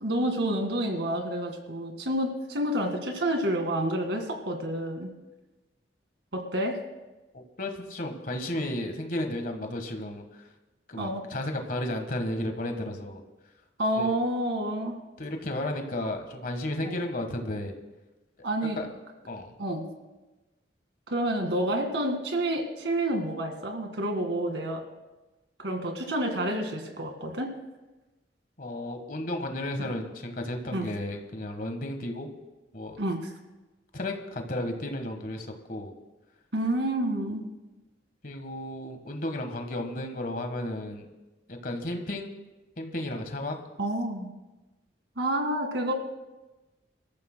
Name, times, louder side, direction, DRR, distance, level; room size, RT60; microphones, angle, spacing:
voice 1, 0.0-5.1 6.3-6.8 11.0-11.2 13.8-15.0 16.8-16.9 18.4-18.8 19.6-19.9 21.1-24.8 25.6-27.5 29.8-29.9 30.7-30.9 33.0-33.2 36.5-37.5 43.8-44.3 45.2-45.9, right 1 dB, 80° right, 4 dB, 1.9 m, -29 dB
voice 2, 7.3-10.5 10.9-13.2 13.9-14.1 15.2-17.7 18.7-18.9 19.3-19.5 28.6-32.3 32.7-33.0 33.9-35.9 38.2-41.1 41.5-42.3 42.8-43.5, left 1 dB, 50° left, 5 dB, 1.4 m, -33 dB
26.5 x 13.5 x 2.2 m, 1.1 s
head